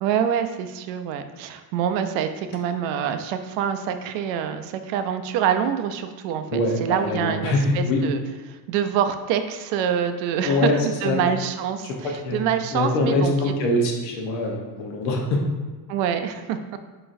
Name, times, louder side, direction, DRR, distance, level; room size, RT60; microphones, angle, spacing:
voice 1, 0.0-8.2 8.5-13.3 15.9-16.6, right 8 dB, 75° right, 8 dB, 0.5 m, -26 dB
voice 2, 6.5-8.0 10.4-10.7 11.0-11.2 11.8-12.4 12.7-15.4, left 2 dB, 85° left, 0 dB, 1.0 m, -23 dB
4.5 x 3.9 x 2.6 m, 1.3 s
cardioid pair, 120°, 46 cm